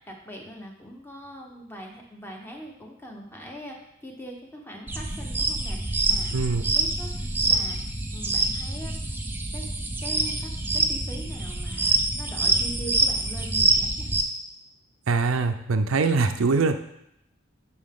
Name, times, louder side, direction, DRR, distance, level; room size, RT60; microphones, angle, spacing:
voice 1, 0.0-3.8 4.0-7.8 8.1-8.9 9.5-9.7 10.0-14.1, equal, 10° left, 1 dB, 1.0 m, -41 dB
sound 1, 4.9-14.2, right 3 dB, 10° right, 0.5 m, -26 dB
voice 2, 6.3-6.6 15.1-16.8, right 4 dB, 70° right, 8 dB, 0.5 m, -23 dB
11.5 x 4.7 x 3.7 m, 0.79 s
head